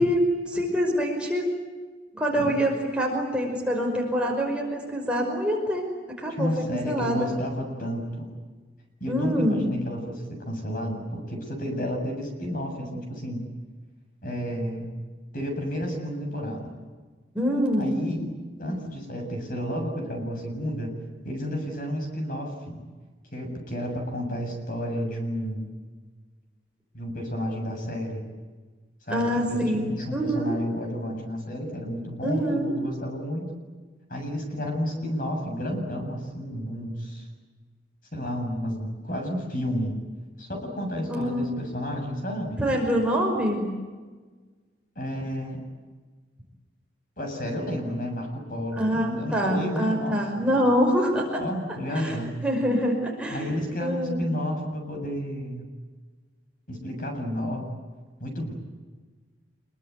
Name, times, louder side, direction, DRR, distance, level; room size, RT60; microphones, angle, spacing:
voice 1, 0.0-1.5 2.1-7.3 9.1-9.6 17.3-18.0 29.1-29.8 30.1-30.6 32.2-32.7 41.1-41.5 42.6-43.8 48.8-51.4 51.9-52.2 52.4-53.5 53.8-54.3, equal, 5° right, -1 dB, 5.5 m, -25 dB
voice 2, 6.3-8.3 9.0-13.4 14.2-14.9 15.3-16.7 17.8-18.3 18.6-20.9 21.2-22.8 23.3-25.7 26.9-28.2 29.0-33.5 34.1-37.3 38.1-40.0 40.4-42.6 45.0-45.6 47.2-50.5 51.4-52.4 53.3-55.7 56.7-57.7 58.2-58.5, equal, 45° left, 3 dB, 7.4 m, -31 dB
27.0 x 22.5 x 9.6 m, 1.4 s
head